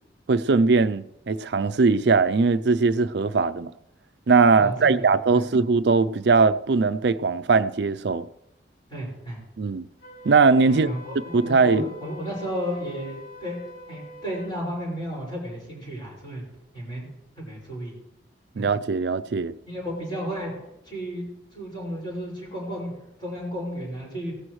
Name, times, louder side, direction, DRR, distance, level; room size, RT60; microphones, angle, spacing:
voice 1, 0.3-3.7 4.3-8.3 9.6-9.9 10.2-10.9 11.3-11.8 18.6-19.5, right 4 dB, 70° right, 0.5 m, -20 dB
voice 2, 4.6-5.4 8.9-9.4 10.6-13.6 13.9-16.4 16.7-17.1 17.4-17.9 18.5-18.6 19.7-20.5 20.8-22.9 23.2-24.4, equal, 25° left, 5.5 m, -33 dB
Wind instrument woodwind instrument, 10.0-14.5, left 3 dB, 50° left, 2.5 m, -44 dB
17.0 x 14.0 x 3.2 m
head